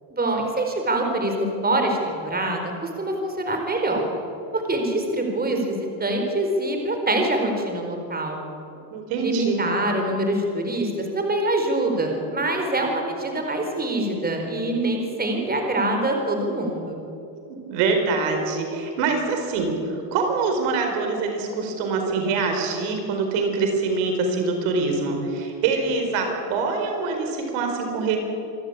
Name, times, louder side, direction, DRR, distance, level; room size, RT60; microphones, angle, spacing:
voice 1, 0.1-4.0 4.5-8.4 9.2-17.0, right 1 dB, 20° right, 3 dB, 4.6 m, -25 dB
voice 2, 8.9-9.6 17.5-28.2, right 4 dB, 80° right, 3 dB, 4.5 m, -24 dB
27.5 x 12.5 x 8.7 m, 2.7 s
supercardioid pair, 105°, 49 cm